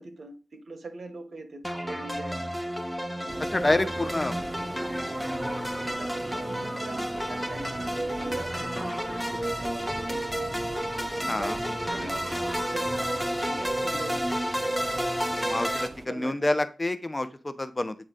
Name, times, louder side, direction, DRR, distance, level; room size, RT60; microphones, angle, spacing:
voice 1, 0.0-2.5 3.2-4.3 5.8-10.5 11.1-14.2 16.0-16.5, right 2 dB, 80° right, 1.1 m, -42 dB
sound 1, 1.6-15.9, equal, ahead, 1.0 m, -31 dB
sound 2, 3.3-16.1, right 2 dB, 50° right, 0.6 m, -43 dB
voice 2, 3.5-4.3 11.3-11.6 15.4-17.9, left 2 dB, 30° left, 0.9 m, -27 dB
9.0 x 3.9 x 3.8 m
cardioid pair, 45°, 0 cm